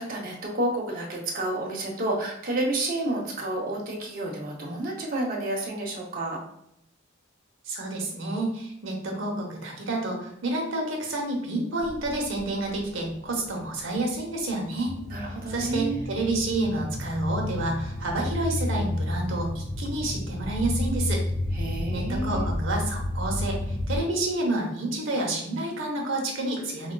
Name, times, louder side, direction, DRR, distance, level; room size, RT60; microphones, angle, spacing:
voice 1, 0.0-6.4 15.1-16.1 21.5-22.5, right 1 dB, 45° right, -2 dB, 0.7 m, -30 dB
voice 2, 7.6-14.9 15.5-21.2 21.9-26.9, right 2 dB, 70° right, 0 dB, 0.8 m, -29 dB
sound 1, 11.8-24.0, left 1 dB, 10° left, 1.2 m, -31 dB
4.9 x 2.3 x 2.3 m, 0.76 s
head